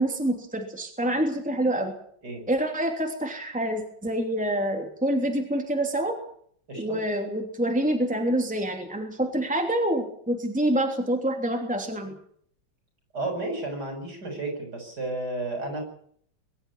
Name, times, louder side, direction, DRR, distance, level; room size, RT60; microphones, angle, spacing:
voice 1, 0.0-1.9 2.5-6.2 6.8-12.1, right 1 dB, 5° right, 3 dB, 3.0 m, -26 dB
voice 2, 13.1-15.8, right 2 dB, 60° right, 4 dB, 7.9 m, -32 dB
22.5 x 12.5 x 10.0 m, 0.63 s
omnidirectional pair, 2.0 m